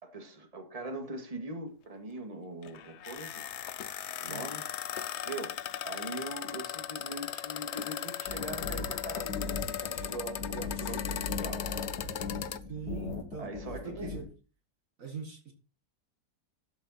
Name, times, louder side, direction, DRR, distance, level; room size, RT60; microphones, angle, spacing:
voice 1, 0.0-3.4 4.2-4.6 5.2-5.5 5.8-11.1 11.4-11.7 13.4-14.2, right 2 dB, 25° right, 2.0 m, -41 dB
sound 1, 2.6-12.6, left 10 dB, 55° left, 0.8 m, -38 dB
sound 2, 8.3-14.2, left 4 dB, 85° left, 2.5 m, -38 dB
voice 2, 12.7-13.6 13.8-14.3 15.0-15.5, right 5 dB, 55° right, 1.9 m, -41 dB
13.0 x 7.1 x 4.2 m
omnidirectional pair, 1.7 m